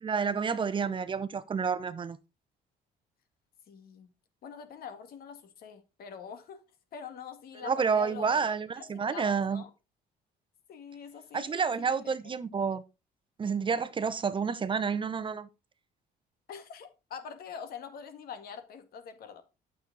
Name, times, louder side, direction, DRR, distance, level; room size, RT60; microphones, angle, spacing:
voice 1, 0.0-2.2 7.6-9.6 11.3-12.8 13.4-15.5, right 6 dB, 30° right, 0.7 m, -29 dB
voice 2, 3.7-4.1 4.4-6.6 6.9-9.7 10.7-11.6 11.9-12.4 16.5-19.4, left 7 dB, 65° left, 1.8 m, -44 dB
9.0 x 6.9 x 3.9 m
cardioid pair, 110°, 17 cm